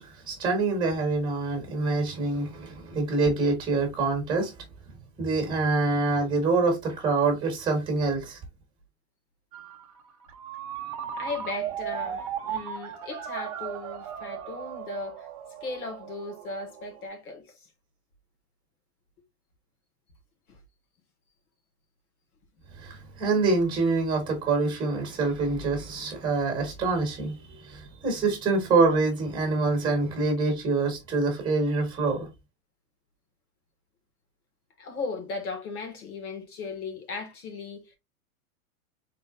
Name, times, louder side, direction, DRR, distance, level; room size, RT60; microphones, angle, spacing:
voice 1, 0.0-4.5 5.2-8.4 22.8-32.3, right 3 dB, 10° right, 1.5 m, -26 dB
Ringtone, 9.5-17.0, right 9 dB, 25° right, 0.5 m, -37 dB
voice 2, 11.2-15.3 15.6-17.7 20.5-20.6 34.8-38.0, left 3 dB, 80° left, 2.0 m, -37 dB
4.3 x 3.9 x 2.5 m
supercardioid pair, 175°, 44 cm